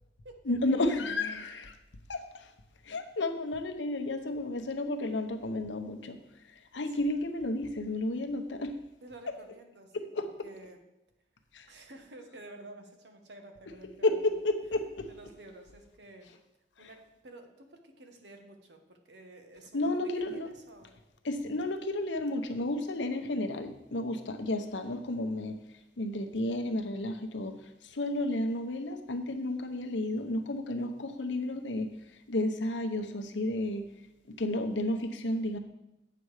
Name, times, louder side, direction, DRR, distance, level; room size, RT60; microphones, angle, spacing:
voice 1, 0.5-1.7 2.1-2.2 2.9-6.2 6.7-8.8 9.9-10.3 11.5-11.6 14.0-15.1 16.8-16.9 19.7-20.5 21.2-25.5 26.0-27.5 27.9-31.9 32.3-33.8 34.3-35.6, left 2 dB, 85° left, 7 dB, 0.9 m, -32 dB
voice 2, 6.8-7.1 9.0-10.8 11.7-14.3 15.1-16.4 16.8-20.0 20.3-21.0 23.9-24.2, right 2 dB, 65° right, 5 dB, 1.3 m, -51 dB
8.8 x 6.8 x 4.8 m, 0.91 s
head